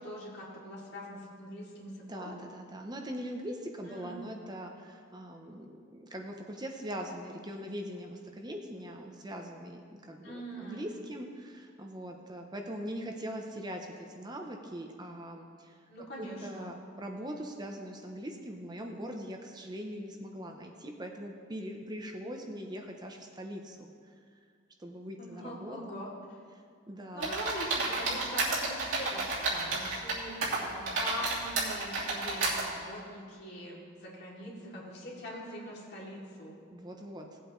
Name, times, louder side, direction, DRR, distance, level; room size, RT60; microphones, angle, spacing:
voice 1, 0.0-2.4 3.9-4.2 10.2-10.8 15.9-16.7 25.2-26.1 27.1-29.2 29.5-30.3 30.7-36.5, equal, 55° left, -5 dB, 2.6 m, -42 dB
voice 2, 2.0-15.8 16.2-24.2 24.8-26.0 26.5-27.3 36.7-37.4, equal, 20° right, 2 dB, 0.7 m, -41 dB
sound 1, 27.2-30.1 30.4-32.6, right 3 dB, 85° right, 3.0 m, -31 dB
17.5 x 8.1 x 3.1 m, 2.2 s
head